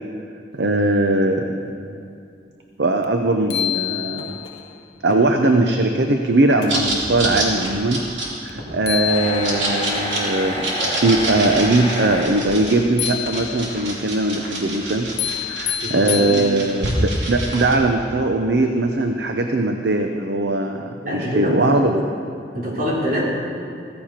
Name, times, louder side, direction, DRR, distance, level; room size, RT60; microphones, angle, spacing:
voice 1, 0.5-1.5 2.8-4.4 5.0-8.1 8.4-10.7 11.0-15.1 15.4-22.1, right 2 dB, 65° right, 4 dB, 0.7 m, -20 dB
sound 1, 3.0-3.1 3.5-4.6 8.5-8.6 8.9-9.9 13.0-13.9 15.2-16.9, left 13 dB, 60° left, 0.6 m, -27 dB
sound 2, 4.2-4.6 5.0-5.1 5.8-5.9 6.6-6.7 9.1-12.3, left 1 dB, 30° left, 4.5 m, -29 dB
sound 3, 6.7-17.8, right 1 dB, 85° right, 2.9 m, -27 dB
voice 2, 15.8-16.4 21.0-21.6 21.9-22.0 22.5-23.2, equal, 50° right, -4 dB, 3.3 m, -25 dB
15.5 x 15.0 x 4.4 m, 2.4 s
head